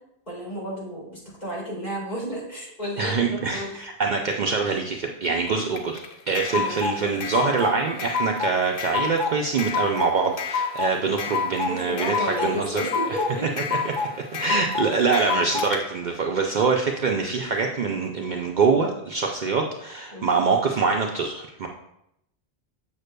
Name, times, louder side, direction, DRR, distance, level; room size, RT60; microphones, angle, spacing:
voice 1, 0.3-3.7 6.5-7.5 11.6-13.5 20.1-20.4, equal, 40° left, -6 dB, 2.6 m, -32 dB
voice 2, 3.0-12.8 13.1-13.2 13.7-21.7, right 4 dB, 55° right, 1 dB, 0.6 m, -24 dB
sound 1, 5.7-15.8, left 5 dB, 65° left, 0.8 m, -28 dB
7.2 x 6.4 x 2.2 m, 0.79 s
omnidirectional pair, 1.1 m